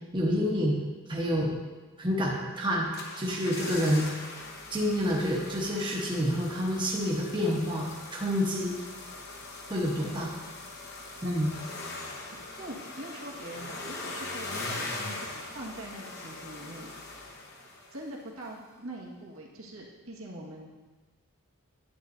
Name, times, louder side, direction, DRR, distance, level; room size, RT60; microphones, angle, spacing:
voice 1, 0.1-0.8 1.1-1.5 2.0-2.9 3.2-4.1 4.7-7.8 8.1-8.7 9.7-10.3 11.2-11.5, equal, 20° right, -3 dB, 1.0 m, -28 dB
sound 1, 2.6-18.1 18.4-18.5, left 2 dB, 50° left, 1.0 m, -41 dB
voice 2, 12.6-16.9 17.9-20.7, right 1 dB, 80° right, -3 dB, 1.6 m, -43 dB
10.5 x 8.3 x 2.6 m, 1.3 s
head